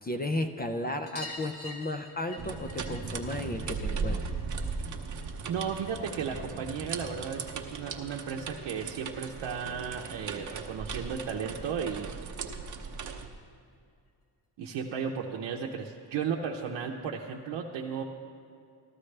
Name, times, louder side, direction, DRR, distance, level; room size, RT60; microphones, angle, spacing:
voice 1, 0.0-4.3 4.9-5.0, left 1 dB, 25° left, 7 dB, 0.4 m, -34 dB
sound 1, 1.1-6.2 6.5-7.6 9.0-9.1 9.3-9.4 9.7-9.8 11.1-11.2 11.4-11.5 11.9-12.0 13.2-13.3 14.1-14.2, left 2 dB, 45° left, 1.4 m, -48 dB
sound 2, 2.4-13.3, right 5 dB, 45° right, 0.8 m, -37 dB
voice 2, 5.5-12.3 14.6-18.0, right 6 dB, 85° right, -1 dB, 0.8 m, -34 dB
14.0 x 13.0 x 3.3 m, 2.4 s
wide cardioid pair, 145°, 43 cm